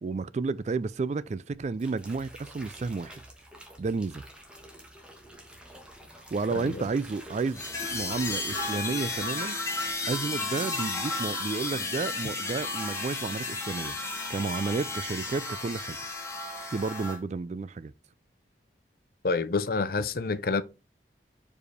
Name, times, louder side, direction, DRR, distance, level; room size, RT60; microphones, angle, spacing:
voice 1, 0.0-3.1 3.8-4.2 6.3-7.6 7.9-9.6 10.1-14.0 14.3-16.0 16.7-17.9, right 4 dB, 40° right, 0.3 m, -31 dB
sound 1, 1.5-9.5 9.8-10.2, equal, 5° right, 1.4 m, -48 dB
sound 2, 7.5-17.2, left 3 dB, 15° left, 1.8 m, -33 dB
voice 2, 19.2-20.6, left 4 dB, 55° left, 0.6 m, -28 dB
4.9 x 4.8 x 5.1 m
head